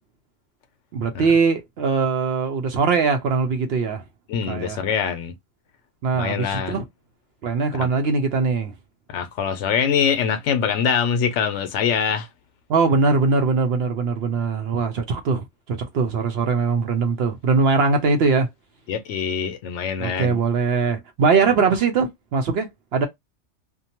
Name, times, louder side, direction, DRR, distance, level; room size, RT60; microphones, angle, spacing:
voice 1, 0.9-4.0 4.5-4.8 6.0-6.8 7.4-8.7 12.7-18.5 20.0-23.1, right 4 dB, 65° right, 0.8 m, -21 dB
voice 2, 4.3-5.3 6.1-6.8 7.8-7.9 9.1-12.3 18.9-20.4, left 7 dB, 75° left, 0.9 m, -24 dB
2.6 x 2.2 x 2.8 m
omnidirectional pair, 1.3 m